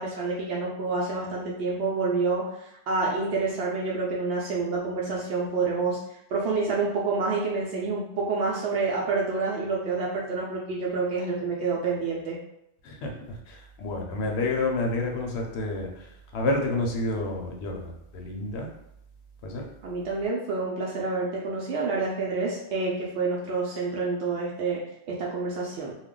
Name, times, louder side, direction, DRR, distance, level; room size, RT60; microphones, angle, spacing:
voice 1, 0.0-6.0 6.3-12.4 19.8-24.8 25.1-25.9, right 4 dB, 75° right, -4 dB, 0.8 m, -28 dB
voice 2, 12.8-16.1 16.3-18.7 19.4-19.6, left 2 dB, 80° left, 1 dB, 0.9 m, -29 dB
2.4 x 2.1 x 3.6 m, 0.81 s
omnidirectional pair, 1.1 m